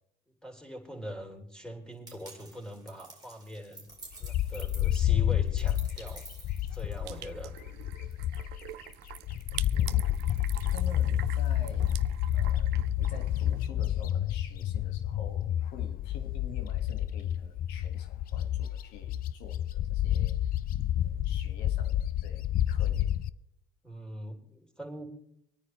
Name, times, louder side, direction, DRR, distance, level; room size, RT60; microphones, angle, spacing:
voice 1, 0.4-3.9 4.2-6.2 6.6-7.5 23.8-25.0, equal, 5° left, 1 dB, 3.8 m, -42 dB
sound 1, 2.1-7.3, right 3 dB, 20° right, 2.7 m, -50 dB
Bird, 4.2-8.7 9.1-23.3, left 11 dB, 55° left, 0.5 m, -29 dB
sound 2, 7.0-13.6, right 17 dB, 75° right, 0.5 m, -45 dB
voice 2, 9.7-10.3 10.7-12.0 12.3-20.3 20.9-23.1, left 6 dB, 80° left, 6 dB, 1.9 m, -48 dB
25.0 x 9.7 x 3.3 m, 0.74 s
supercardioid pair, 75°, 17 cm